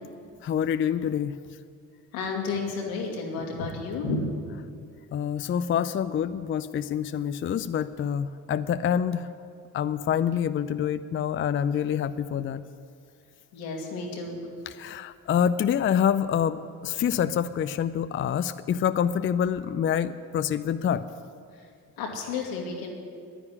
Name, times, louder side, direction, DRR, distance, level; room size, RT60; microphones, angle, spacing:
voice 1, 0.4-1.4 5.1-9.3 9.7-12.6 14.7-21.0, left 8 dB, 30° left, 13 dB, 0.5 m, -26 dB
voice 2, 2.1-4.2 13.5-14.4 17.0-17.1 21.5-21.7 22.0-22.9, left 4 dB, 80° left, 0 dB, 2.3 m, -32 dB
10.5 x 10.0 x 9.9 m, 2.3 s
hypercardioid pair, 50°, 42 cm